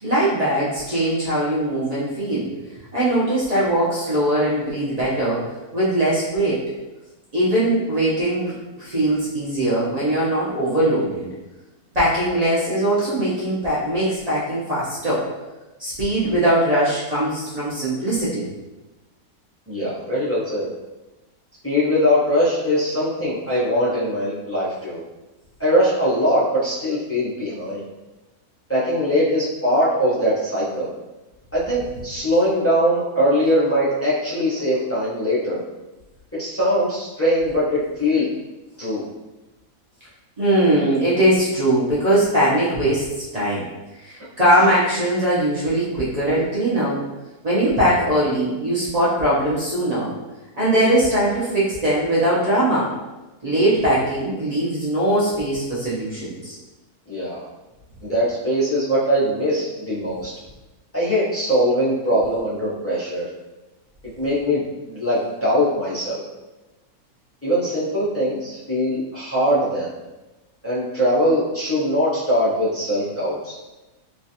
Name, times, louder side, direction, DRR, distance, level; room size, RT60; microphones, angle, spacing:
voice 1, 0.0-2.5 2.9-5.5 5.7-6.6 7.3-11.3 11.9-15.2 15.8-18.4 40.4-43.7 44.0-47.0 47.4-50.1 50.5-52.9 53.4-56.6, right 1 dB, 50° right, -9 dB, 0.5 m, -21 dB
voice 2, 19.7-20.7 21.6-25.0 25.6-27.8 28.7-30.9 31.5-35.6 36.4-38.3 38.8-39.0 57.1-57.5 58.0-60.3 60.9-63.3 64.2-66.2 67.4-69.9 70.6-73.5, equal, 15° left, -10 dB, 0.4 m, -21 dB
3.1 x 2.3 x 2.7 m, 1.1 s
omnidirectional pair, 1.6 m